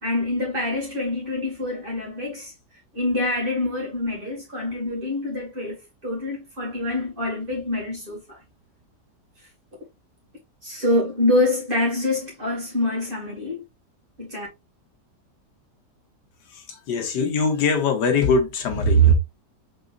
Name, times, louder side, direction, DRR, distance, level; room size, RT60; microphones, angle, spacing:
voice 1, 0.0-2.5 2.9-5.8 6.0-8.4 10.6-13.6 14.2-14.5, left 2 dB, 30° right, 2.1 m, -26 dB
voice 2, 16.5-19.1, equal, 75° left, 1.5 m, -20 dB
4.8 x 3.8 x 2.5 m
omnidirectional pair, 1.9 m